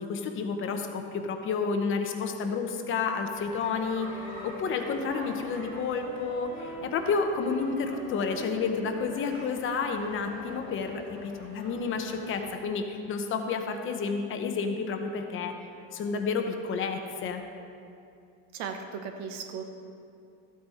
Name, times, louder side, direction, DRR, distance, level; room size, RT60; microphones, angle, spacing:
voice 1, 0.0-15.5 15.9-17.4, left 5 dB, 35° left, 5 dB, 0.8 m, -30 dB
sound 1, 3.3-12.6, right 2 dB, 55° right, 1.9 m, -47 dB
Wind instrument woodwind instrument, 4.0-12.0, left 2 dB, 55° left, 2.7 m, -45 dB
voice 2, 18.5-19.7, right 6 dB, 80° right, 5 dB, 1.3 m, -36 dB
13.5 x 8.6 x 4.2 m, 2.5 s
cardioid pair, 165°, 36 cm